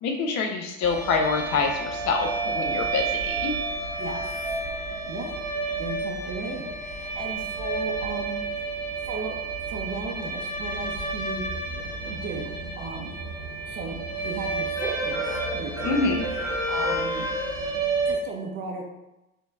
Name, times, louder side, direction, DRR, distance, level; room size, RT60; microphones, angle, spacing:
voice 1, 0.0-3.6 15.8-16.2, left 4 dB, 45° left, 2 dB, 1.0 m, -26 dB
sound 1, 0.8-18.1, right 2 dB, 90° right, 1.2 m, -30 dB
voice 2, 5.7-8.5 9.0-9.3 9.7-11.4 11.8-13.1 13.7-15.3 15.5-17.3 18.1-18.8, right 3 dB, 30° right, 0 dB, 0.8 m, -36 dB
4.2 x 2.9 x 3.4 m, 0.94 s
hypercardioid pair, 80°, 40 cm